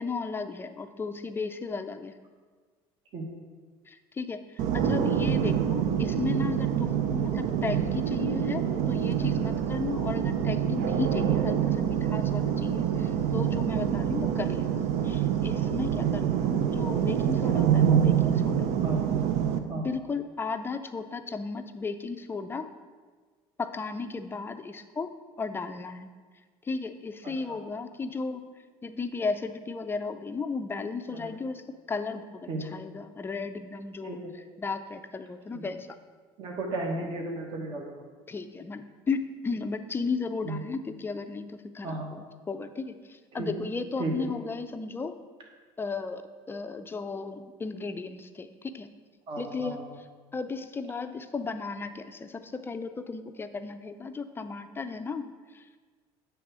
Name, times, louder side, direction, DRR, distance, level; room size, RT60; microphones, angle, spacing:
voice 1, 0.0-2.1 3.9-18.7 19.7-22.7 23.6-26.1 26.6-28.4 28.8-36.0 38.3-45.1 45.8-46.2 46.5-48.9 49.4-50.1 50.3-55.7, left 4 dB, 20° left, 8 dB, 0.4 m, -35 dB
sound 1, 4.6-19.6, right 9 dB, 70° right, 0.5 m, -26 dB
voice 2, 27.2-27.6 31.1-31.3 32.5-32.7 34.0-34.3 35.5-35.6 36.4-37.9 40.4-40.6 41.8-42.1 43.3-43.6 44.0-44.1 49.3-49.8, right 2 dB, 45° right, 0 dB, 1.3 m, -34 dB
8.6 x 3.4 x 6.0 m, 1.5 s
cardioid pair, 120°, 12 cm